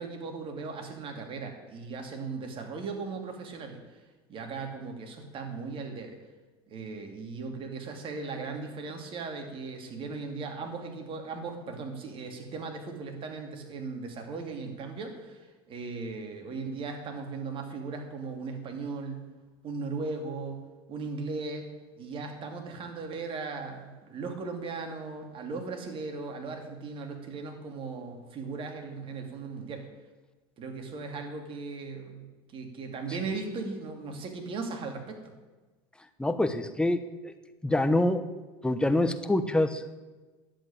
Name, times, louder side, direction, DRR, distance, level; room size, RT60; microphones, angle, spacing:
voice 1, 0.0-3.8 4.3-6.2 6.7-19.2 19.6-20.6 20.9-21.7 22.0-29.9 30.6-32.2 32.5-35.3, right 4 dB, 40° right, 4 dB, 2.7 m, -37 dB
voice 2, 36.2-37.3 37.6-38.2 38.6-39.9, left 1 dB, 5° left, 9 dB, 1.0 m, -26 dB
10.5 x 7.9 x 8.7 m, 1.2 s
supercardioid pair, 100°, 13 cm